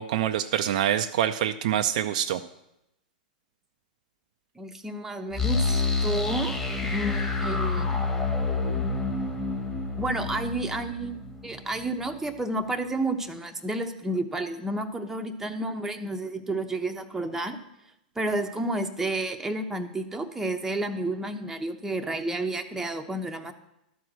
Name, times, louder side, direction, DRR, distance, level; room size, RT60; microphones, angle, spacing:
voice 1, 0.0-2.4, right 10 dB, 60° right, 8 dB, 0.5 m, -25 dB
voice 2, 4.6-6.6 6.8-8.0 10.0-11.2 11.4-17.6 18.2-23.5, right 2 dB, 10° right, 5 dB, 0.9 m, -31 dB
sound 1, 5.3-12.1, left 3 dB, 10° left, 1.7 m, -28 dB
12.5 x 4.6 x 7.5 m, 0.85 s
hypercardioid pair, 110°, 5 cm